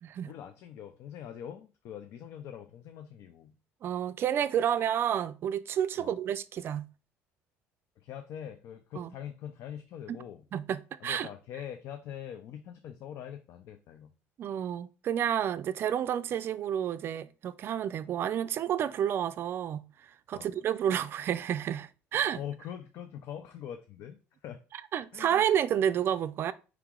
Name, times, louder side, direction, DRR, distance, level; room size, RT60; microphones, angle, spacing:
voice 1, 0.2-3.6 6.0-6.1 8.0-10.5 11.0-14.1 20.3-20.5 22.4-24.6 25.1-25.4, left 9 dB, 60° left, 0.4 m, -43 dB
voice 2, 3.8-6.8 9.0-9.1 10.5-11.3 14.4-19.8 20.3-22.4 24.9-26.5, right 9 dB, 45° right, 0.4 m, -30 dB
4.8 x 2.9 x 3.6 m
cardioid pair, 120°, 5 cm